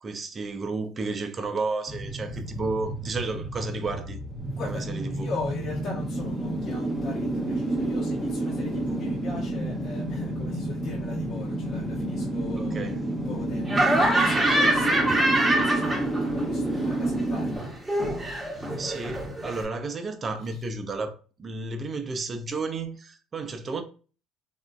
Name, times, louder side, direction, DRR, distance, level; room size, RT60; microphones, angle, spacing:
voice 1, 0.0-4.2 4.6-5.3 12.6-13.0 18.5-23.8, right 3 dB, 35° right, 0.6 m, -32 dB
sound 1, 1.9-17.6, right 1 dB, 10° left, 0.9 m, -30 dB
voice 2, 4.5-17.7, left 4 dB, 60° left, 1.1 m, -40 dB
Laughter, 13.7-16.4 16.7-19.6, right 1 dB, 15° right, 1.0 m, -25 dB
3.5 x 2.5 x 2.3 m
supercardioid pair, 85°, 0 cm